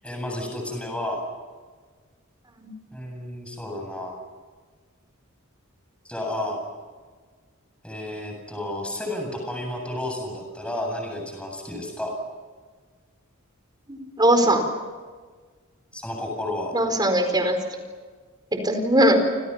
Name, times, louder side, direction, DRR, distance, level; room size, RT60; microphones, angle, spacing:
voice 1, 0.0-1.2 2.9-4.2 6.0-6.6 7.8-12.1 15.9-16.7, left 1 dB, 5° left, 1 dB, 8.0 m, -31 dB
voice 2, 13.9-14.6 16.7-17.6 18.6-19.2, right 1 dB, 20° right, 6 dB, 4.5 m, -20 dB
30.0 x 27.5 x 5.9 m, 1.5 s
head